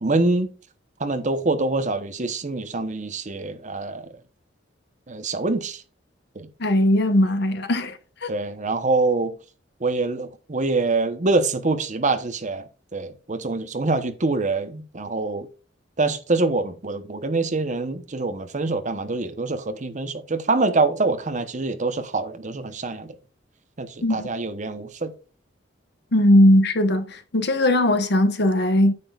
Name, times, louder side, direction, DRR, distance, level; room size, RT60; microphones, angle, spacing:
voice 1, 0.0-0.5 1.0-4.1 5.1-5.8 6.4-6.5 8.3-9.4 9.8-12.6 12.9-15.5 16.0-23.1 23.8-25.1, right 3 dB, 40° right, 0.9 m, -25 dB
voice 2, 6.6-8.0 8.2-8.3 24.0-24.3 26.1-28.9, left 1 dB, 60° left, 1.1 m, -19 dB
9.7 x 7.0 x 2.4 m
head